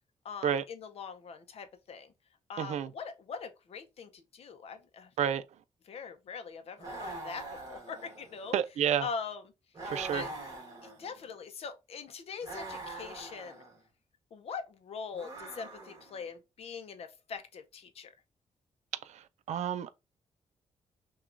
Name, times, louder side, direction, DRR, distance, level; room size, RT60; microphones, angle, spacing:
voice 1, 0.2-2.1 2.5-5.1 5.9-8.5 9.0-9.4 10.1-10.3 10.8-13.6 14.3-18.1, left 5 dB, 60° left, 0.6 m, -42 dB
voice 2, 2.6-2.9 5.2-5.4 8.5-9.1 9.9-10.2 19.1-19.2 19.5-19.9, right 9 dB, 75° right, 0.4 m, -30 dB
sound 1, 6.8-8.6 9.7-11.3 12.4-13.8 15.1-16.2, right 2 dB, 30° right, 1.3 m, -43 dB
5.9 x 2.3 x 2.5 m
wide cardioid pair, 170°, 12 cm